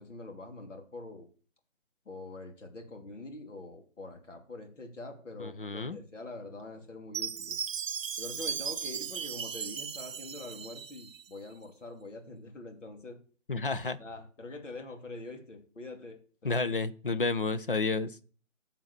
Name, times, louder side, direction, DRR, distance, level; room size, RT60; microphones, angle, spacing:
voice 1, 0.0-1.3 2.0-7.6 8.2-13.2 14.0-16.7, left 2 dB, 65° left, 4 dB, 2.9 m, -44 dB
voice 2, 5.4-6.0 13.5-14.0 16.4-18.2, left 3 dB, 45° left, 14 dB, 0.8 m, -31 dB
Chime, 7.1-11.3, right 7 dB, 75° right, 0.7 m, -37 dB
9.5 x 5.6 x 7.3 m, 0.40 s
hypercardioid pair, 170°, 39 cm